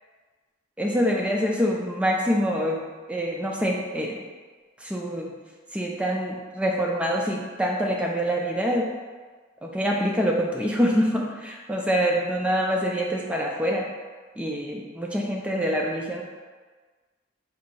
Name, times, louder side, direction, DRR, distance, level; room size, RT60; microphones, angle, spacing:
voice 1, 0.8-2.8 3.1-4.2 4.8-5.3 5.7-8.8 9.6-13.9 14.4-16.2, equal, 5° right, -1 dB, 0.3 m, -25 dB
3.8 x 2.6 x 4.4 m, 1.4 s
head